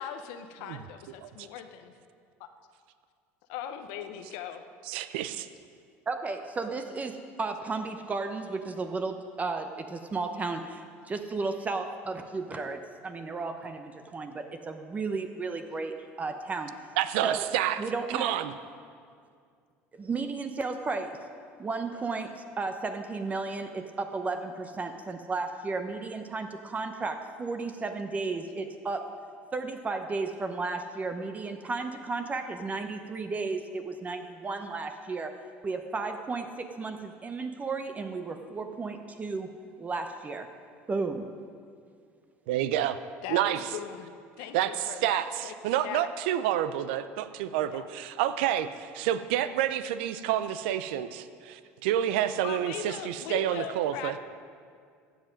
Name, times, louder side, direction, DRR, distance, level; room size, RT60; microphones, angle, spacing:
voice 1, 0.0-1.7 3.5-4.6 43.2-45.5 45.8-46.0 47.7-47.9 48.5-48.6 52.4-54.2, left 9 dB, 80° left, 7 dB, 0.8 m, -39 dB
voice 2, 4.9-5.5 17.0-17.8 18.1-18.5 42.5-43.0 43.3-43.6 44.5-44.7 45.0-45.3 45.6-48.7 48.9-54.1, right 11 dB, 85° right, 12 dB, 0.5 m, -28 dB
voice 3, 6.1-16.7 17.2-17.5 17.8-18.3 20.0-21.2 21.6-29.1 29.5-35.3 35.6-39.5 39.8-40.5 40.9-41.3, right 3 dB, 25° right, 6 dB, 0.8 m, -34 dB
14.5 x 7.7 x 5.2 m, 2.2 s
supercardioid pair, 95°, 6 cm